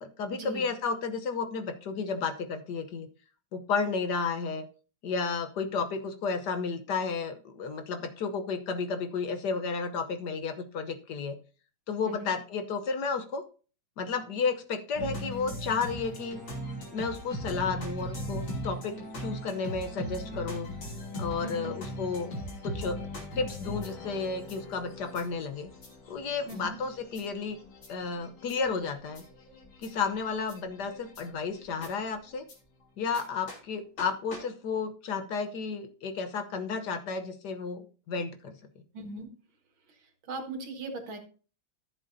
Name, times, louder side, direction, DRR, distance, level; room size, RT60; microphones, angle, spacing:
voice 1, 0.0-3.1 3.5-4.6 5.0-11.4 11.9-13.4 14.0-16.4 16.9-18.9 19.2-20.7 21.2-22.3 22.6-23.0 23.4-25.7 26.1-27.6 27.9-29.2 29.8-32.4 33.0-38.5, left 5 dB, 60° left, 8 dB, 1.4 m, -32 dB
sound 1, 14.9-32.5 33.1-33.2 33.5-33.6 34.0-34.1 34.3-34.4, equal, 90° left, 3.8 m, -40 dB
voice 2, 21.4-21.8 26.5-26.8 38.9-39.3 40.3-41.2, right 2 dB, 85° right, 4 dB, 2.5 m, -38 dB
14.0 x 7.7 x 2.7 m, 0.38 s
omnidirectional pair, 2.1 m